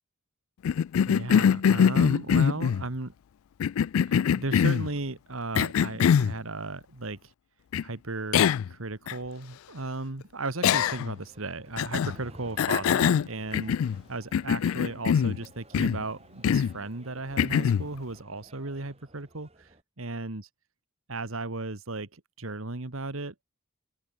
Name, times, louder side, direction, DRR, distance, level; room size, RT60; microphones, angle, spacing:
Cough, 0.6-2.8 3.6-4.9 5.5-6.3 7.7-7.8 8.3-8.7 9.1-9.2 10.6-11.2 11.8-12.2 12.6-14.0 14.3-15.4 15.7-16.0 16.4-16.8 17.4-17.9, left 8 dB, 75° left, 0.3 m, -23 dB
voice 1, 1.0-3.1 4.1-7.3 7.8-13.8 14.1-20.5 21.1-23.4, right 2 dB, 75° right, 1.8 m, -35 dB
sound 1, 10.7-19.8, right 1 dB, 30° right, 6.7 m, -53 dB
open air
head